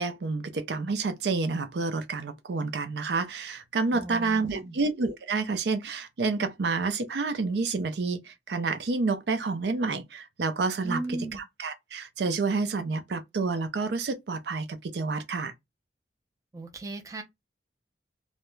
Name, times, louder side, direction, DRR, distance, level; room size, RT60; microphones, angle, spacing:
voice 1, 0.0-11.0 11.3-15.5, right 4 dB, 70° right, 0.5 m, -29 dB
voice 2, 3.9-4.8 10.8-11.4 16.5-17.2, right 2 dB, 20° right, 0.4 m, -36 dB
2.3 x 2.1 x 3.0 m
head